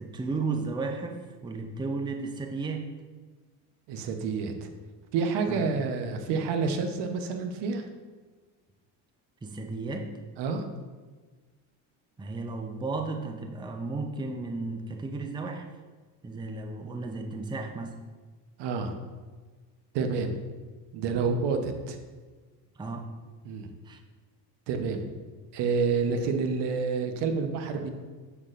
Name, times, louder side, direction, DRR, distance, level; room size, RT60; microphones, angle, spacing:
voice 1, 0.0-2.9 5.5-5.7 9.4-10.1 12.2-15.7 16.2-18.0 22.8-23.1 23.8-24.0, right 3 dB, 10° right, 4 dB, 0.5 m, -34 dB
voice 2, 3.9-4.7 5.1-7.9 10.4-10.7 18.6-18.9 19.9-20.3 20.9-22.0 23.4-23.7 24.7-25.0 25.5-27.9, right 5 dB, 70° right, 6 dB, 1.0 m, -28 dB
7.1 x 6.5 x 2.5 m, 1.4 s
supercardioid pair, 95°, 43 cm